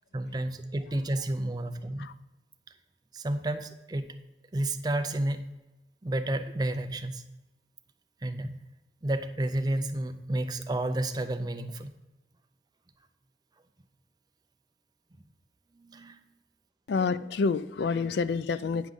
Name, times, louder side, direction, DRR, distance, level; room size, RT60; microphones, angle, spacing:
voice 1, 0.1-2.1 3.1-4.2 4.5-5.5 6.0-7.3 8.2-8.6 9.0-12.0 15.8-16.2, right 1 dB, 20° right, 8 dB, 0.5 m, -31 dB
voice 2, 16.9-18.9, left 4 dB, 65° left, 15 dB, 0.3 m, -28 dB
9.4 x 6.2 x 5.3 m, 1.0 s
head